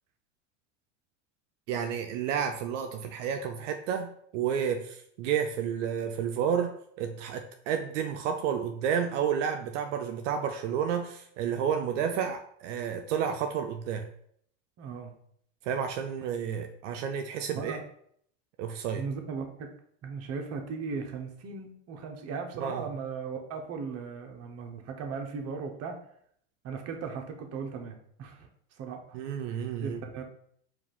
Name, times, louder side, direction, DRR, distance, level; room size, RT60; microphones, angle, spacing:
voice 1, 1.7-14.1 15.6-17.8 18.6-19.0 22.6-22.8 29.1-30.0, right 8 dB, 75° right, 5 dB, 0.5 m, -31 dB
voice 2, 14.8-15.1 17.6-17.8 19.0-19.7 20.0-26.0 26.6-28.5 28.8-29.2 29.8-30.2, right 5 dB, 40° right, 4 dB, 0.9 m, -37 dB
4.6 x 2.5 x 3.6 m, 0.67 s
supercardioid pair, 105°, 36 cm